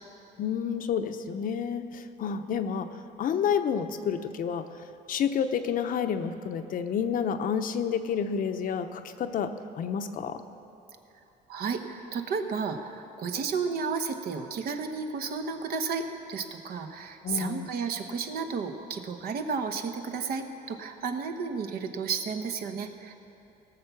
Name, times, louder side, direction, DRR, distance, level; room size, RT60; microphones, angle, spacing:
voice 1, 0.4-2.9 3.2-4.7 5.1-10.4 17.2-17.7, left 7 dB, 55° left, 8 dB, 0.7 m, -29 dB
voice 2, 11.5-23.1, right 5 dB, 65° right, 6 dB, 1.0 m, -32 dB
18.5 x 7.1 x 5.8 m, 2.9 s
cardioid pair, 110°, 17 cm